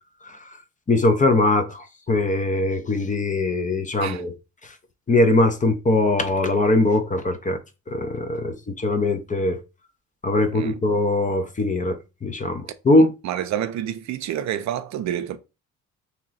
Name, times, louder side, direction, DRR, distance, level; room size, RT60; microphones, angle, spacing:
voice 1, 0.9-4.3 5.1-7.6 7.9-9.6 10.2-13.1, left 2 dB, 25° left, 0.7 m, -21 dB
voice 2, 12.9-15.4, right 10 dB, 65° right, 0.5 m, -29 dB
2.9 x 2.9 x 3.9 m
cardioid pair, 90°, 30 cm